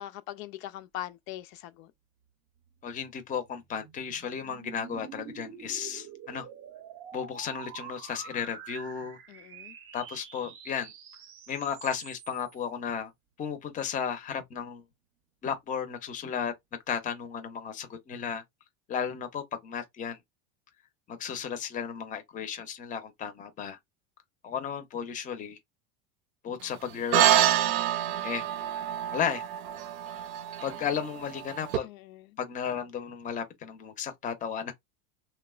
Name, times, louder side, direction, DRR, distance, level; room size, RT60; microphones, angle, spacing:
voice 1, 0.0-1.9 9.3-9.7 31.8-32.2, left 14 dB, 80° left, 0.5 m, -41 dB
voice 2, 2.8-6.5 7.1-9.2 9.9-10.9 11.5-13.1 13.4-14.8 15.4-16.5 16.9-18.4 18.9-20.2 21.1-23.8 24.4-25.6 26.4-27.6 28.2-28.5 29.1-29.5 30.6-31.9 32.4-34.7, left 7 dB, 20° left, 0.5 m, -34 dB
sound 1, 2.9-12.6, right 8 dB, 35° right, 0.5 m, -47 dB
sound 2, 27.1-31.8, right 11 dB, 85° right, 0.6 m, -27 dB
2.9 x 2.1 x 2.3 m
supercardioid pair, 120°, 40 cm